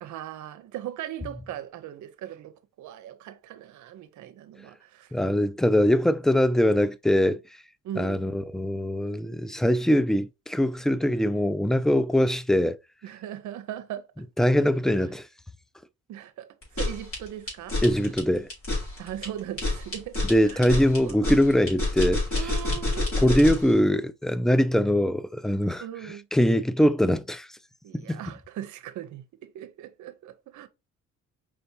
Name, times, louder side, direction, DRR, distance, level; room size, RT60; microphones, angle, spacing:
voice 1, 0.0-5.1 7.8-8.3 13.0-14.2 14.9-15.0 16.1-17.8 19.0-21.3 22.4-23.1 25.8-26.3 27.8-30.7, right 12 dB, 75° right, 0.7 m, -39 dB
voice 2, 5.1-7.4 8.0-12.8 14.4-15.3 17.8-18.5 20.2-22.2 23.2-25.8 26.3-27.5 27.9-28.2, equal, ahead, 0.3 m, -22 dB
sound 1, 16.6-23.7, left 2 dB, 45° left, 3.1 m, -28 dB
4.9 x 3.4 x 2.7 m
cardioid pair, 90°, 30 cm